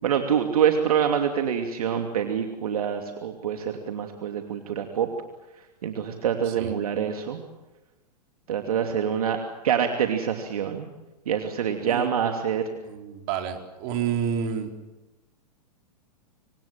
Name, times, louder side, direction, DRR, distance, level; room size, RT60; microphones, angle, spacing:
voice 1, 0.0-5.1 5.8-7.4 8.5-9.4 9.6-10.9 11.3-12.7, right 8 dB, 60° right, 5 dB, 2.9 m, -25 dB
voice 2, 12.8-14.7, right 7 dB, 40° right, 4 dB, 4.3 m, -29 dB
27.0 x 25.5 x 7.5 m, 1.0 s
figure-of-eight pair, 105°, 21 cm